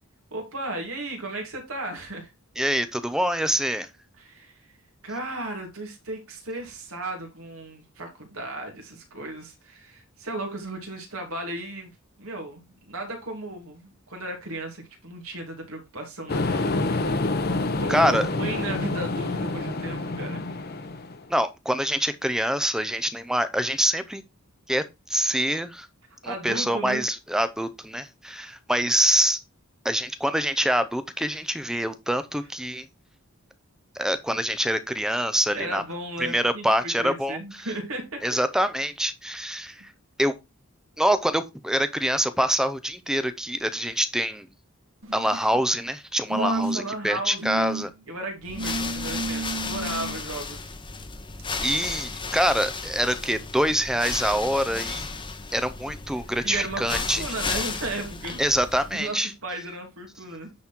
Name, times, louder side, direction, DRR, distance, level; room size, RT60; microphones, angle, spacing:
voice 1, 0.3-2.3 4.2-4.5 5.0-16.7 17.8-20.4 26.2-27.0 35.5-38.4 46.3-50.7 56.1-58.5 58.9-60.5, right 2 dB, 75° right, 2.9 m, -35 dB
voice 2, 2.6-3.9 17.9-18.3 21.3-24.2 24.7-25.9 26.2-29.4 29.8-32.9 34.0-35.8 36.2-37.4 38.2-39.9 40.2-40.3 41.0-44.5 45.1-47.9 51.6-55.0 55.5-57.2 58.4-59.3, equal, 5° right, 0.6 m, -25 dB
sound 1, 16.3-21.2, left 2 dB, 45° left, 1.0 m, -27 dB
sound 2, 45.0-45.6 46.3-47.0 47.4-47.8 48.6-50.2 51.4-51.5, right 2 dB, 60° right, 2.1 m, -31 dB
sound 3, 48.4-59.1, left 4 dB, 20° left, 1.0 m, -34 dB
9.4 x 4.2 x 4.4 m
head